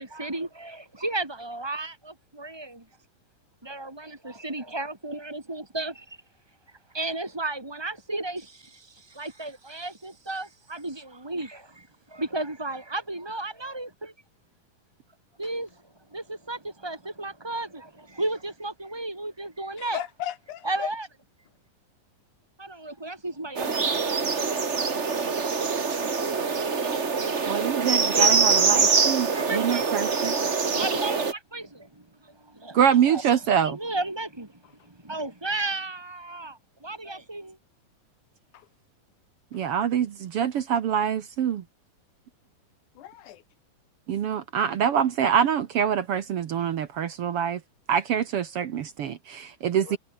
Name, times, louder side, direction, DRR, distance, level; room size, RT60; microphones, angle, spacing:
voice 1, 0.0-2.8 3.6-6.2 6.9-14.1 15.4-15.8 16.1-20.0 20.6-21.1 22.6-24.0 28.1-28.6 29.3-31.9 32.2-33.2 33.6-34.5 34.9-37.6, right 2 dB, 10° right, 1.3 m, -34 dB
voice 2, 19.8-20.9 38.5-38.7 42.9-43.4 49.8-50.0, left 12 dB, 65° left, 2.7 m, -36 dB
sound 1, 23.5-31.3, right 5 dB, 35° right, 1.0 m, -24 dB
voice 3, 27.4-30.3 32.7-33.8 39.5-41.6 44.1-47.6 47.9-50.0, right 8 dB, 65° right, 1.5 m, -25 dB
omnidirectional pair, 4.1 m